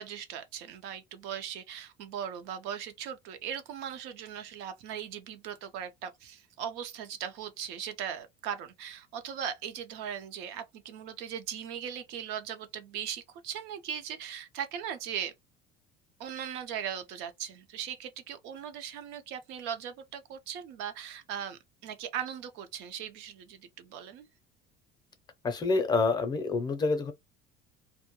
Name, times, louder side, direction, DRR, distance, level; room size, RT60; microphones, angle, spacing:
voice 1, 0.0-15.3 16.2-24.3, right 9 dB, 70° right, 0.6 m, -39 dB
voice 2, 25.4-27.1, left 3 dB, 25° left, 0.5 m, -27 dB
2.2 x 2.1 x 2.9 m
cardioid pair, 145°, 18 cm